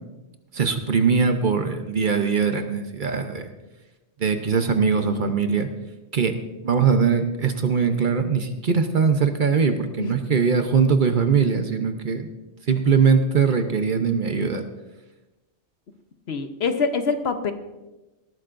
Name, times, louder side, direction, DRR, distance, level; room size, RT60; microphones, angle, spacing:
voice 1, 0.5-3.5 4.2-5.7 6.1-6.4 6.6-12.3 12.7-14.6, right 5 dB, 45° right, 7 dB, 0.9 m, -21 dB
voice 2, 16.3-17.5, left 5 dB, 65° left, 8 dB, 1.1 m, -25 dB
18.5 x 13.5 x 2.6 m, 1.1 s
omnidirectional pair, 1.2 m